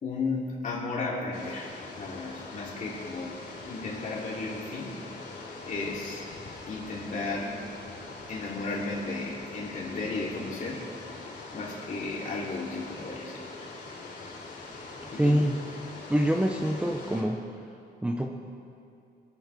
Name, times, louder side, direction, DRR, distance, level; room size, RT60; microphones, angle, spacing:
voice 1, 0.0-3.4 3.6-4.9 5.6-6.3 6.7-7.6 8.3-10.9 11.5-13.7 15.1-15.5, left 3 dB, 45° left, -4 dB, 3.2 m, -34 dB
sound 1, 1.3-17.2, left 3 dB, 80° left, 3.4 m, -43 dB
voice 2, 15.0-15.5 16.1-17.4 18.0-18.3, equal, 5° right, 2 dB, 0.7 m, -25 dB
26.5 x 9.8 x 3.5 m, 2.6 s
wide cardioid pair, 165°, 18 cm